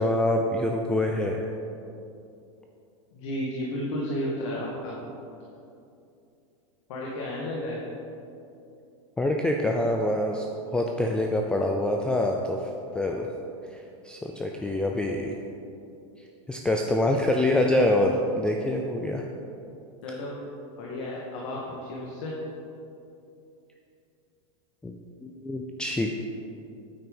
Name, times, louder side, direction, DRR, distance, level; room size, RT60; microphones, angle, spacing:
voice 1, 0.0-1.5 9.2-10.4 10.7-13.3 13.7-15.4 16.5-19.2 24.8-24.9 25.2-26.1, left 1 dB, 5° left, 2 dB, 0.4 m, -25 dB
voice 2, 3.1-5.0 6.9-7.8 20.0-20.3 20.8-22.3, left 1 dB, 60° left, -4 dB, 1.9 m, -32 dB
9.1 x 8.6 x 5.4 m, 2.7 s
supercardioid pair, 155°, 17 cm